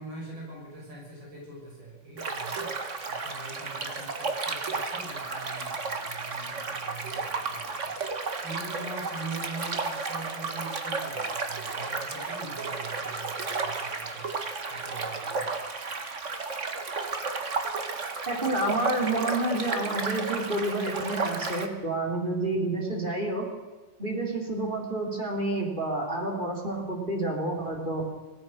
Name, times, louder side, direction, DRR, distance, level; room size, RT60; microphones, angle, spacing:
voice 1, 0.0-15.6, right 2 dB, 90° right, -3 dB, 7.1 m, -43 dB
sound 1, 2.2-21.7, right 4 dB, 40° right, 1.9 m, -33 dB
voice 2, 18.3-23.5 24.0-28.0, right 2 dB, 25° right, 0 dB, 3.9 m, -29 dB
25.0 x 17.5 x 6.5 m, 1.3 s
omnidirectional pair, 2.0 m